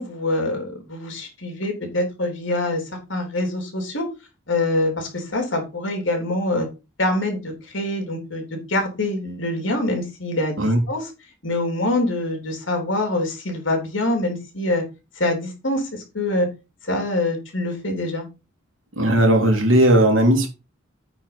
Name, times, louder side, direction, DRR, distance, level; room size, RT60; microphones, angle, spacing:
voice 1, 0.0-2.8 3.1-4.1 4.5-6.7 7.0-11.1 11.4-14.8 15.2-16.5 16.8-18.3, left 1 dB, 65° left, 3 dB, 3.7 m, -25 dB
voice 2, 19.0-20.5, right 1 dB, 80° right, 3 dB, 2.8 m, -16 dB
8.8 x 4.7 x 5.7 m, 0.28 s
head